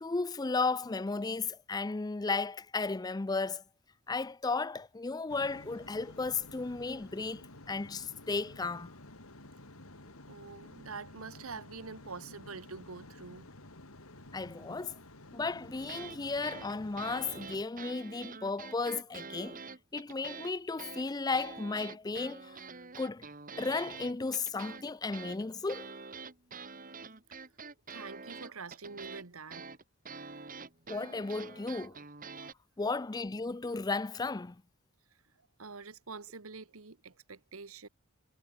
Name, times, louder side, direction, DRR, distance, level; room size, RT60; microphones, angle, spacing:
voice 1, 0.0-3.6 4.1-8.9 14.3-15.0 15.3-19.6 19.9-22.6 23.0-23.2 23.6-25.9 30.9-32.0 32.8-34.6, left 3 dB, 20° left, 0.4 m, -34 dB
sound 1, 5.3-17.6, left 2 dB, 85° left, 4.4 m, -52 dB
voice 2, 10.3-13.5 27.9-29.7 31.8-32.0 35.6-37.9, right 4 dB, 80° right, 1.4 m, -46 dB
sound 2, 15.8-16.2 16.4-20.5 20.8-32.5, right 5 dB, 40° right, 2.8 m, -46 dB
head